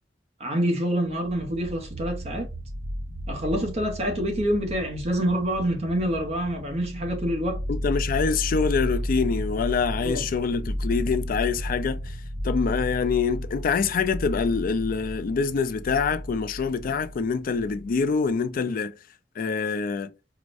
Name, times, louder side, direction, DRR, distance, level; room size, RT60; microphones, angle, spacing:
voice 1, 0.4-2.5 3.3-7.6 10.0-10.3, equal, 35° right, 0.7 m, -26 dB
sound 1, 1.2-18.3, equal, 50° right, 1.1 m, -33 dB
voice 2, 7.7-12.2 12.4-18.9 19.4-20.1, left 5 dB, 50° left, 0.4 m, -25 dB
4.7 x 2.0 x 2.5 m
head